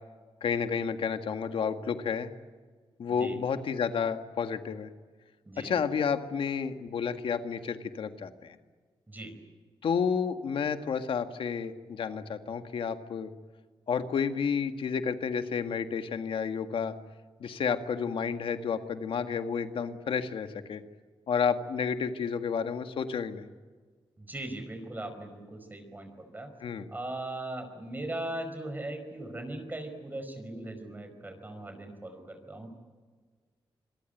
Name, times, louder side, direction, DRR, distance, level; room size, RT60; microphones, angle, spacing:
voice 1, 0.4-2.3 3.0-4.9 5.6-8.6 9.8-13.3 13.9-16.9 17.4-20.8 21.3-23.5 26.6-26.9, left 6 dB, 85° left, 8 dB, 1.8 m, -31 dB
voice 2, 5.4-5.9 9.1-9.4 24.2-26.5 26.9-32.7, right 1 dB, 20° right, 7 dB, 4.9 m, -39 dB
26.0 x 22.5 x 9.2 m, 1.5 s
wide cardioid pair, 110°, 9 cm